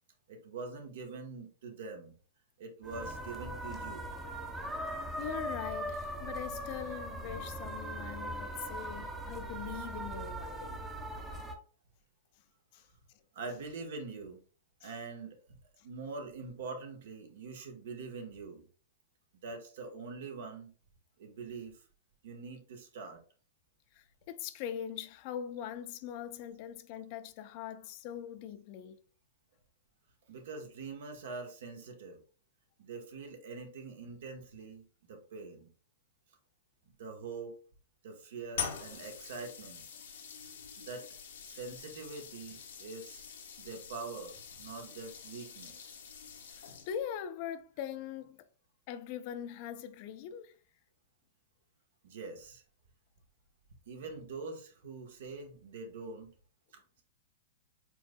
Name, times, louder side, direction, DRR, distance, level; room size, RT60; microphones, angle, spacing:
voice 1, 0.3-2.2 2.6-4.1 13.3-14.4 14.8-15.6 15.8-18.6 19.4-20.7 21.2-21.8 22.2-23.2 30.3-32.2 32.8-35.7 36.9-37.6 38.0-39.9 40.8-41.0 41.4-43.2 43.6-46.0 52.0-52.6 53.9-56.3 56.7-57.0, right 4 dB, 70° right, 1.2 m, -44 dB
sound 1, 2.8-11.5, right 1 dB, 10° right, 0.7 m, -40 dB
voice 2, 5.2-10.8 12.7-12.9 14.8-14.9 15.8-15.9 23.9-29.0 46.5-48.4 48.9-50.6, left 9 dB, 50° left, 0.5 m, -42 dB
sound 2, 38.5-47.1, left 7 dB, 80° left, 1.0 m, -45 dB
4.5 x 3.8 x 2.2 m
hypercardioid pair, 125°, 0 cm